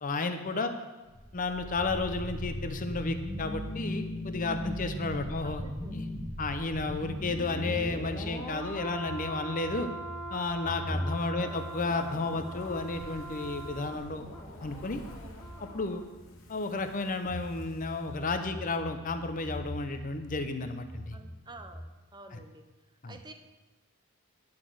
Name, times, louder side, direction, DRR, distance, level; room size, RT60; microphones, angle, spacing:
voice 1, 0.0-0.7 1.3-5.6 5.9-6.1 6.4-9.9 10.3-14.2 14.6-15.0 15.7-16.0 16.5-21.2 22.3-22.4 23.0-23.2, left 3 dB, 35° left, 7 dB, 0.7 m, -32 dB
voice 2, 0.5-0.9 5.4-6.0 11.4-11.7 21.1-21.8 22.1-22.6 23.1-23.3, right 2 dB, 20° right, 7 dB, 0.6 m, -48 dB
sound 1, 1.0-16.0 16.3-16.5, equal, 15° left, 1.6 m, -39 dB
sound 2, 7.1-15.0 15.4-15.5 17.2-21.9, equal, 5° right, 1.0 m, -42 dB
Fire, 11.4-18.7 19.0-19.1, equal, 65° left, 1.4 m, -51 dB
10.5 x 4.1 x 7.7 m, 1.2 s
head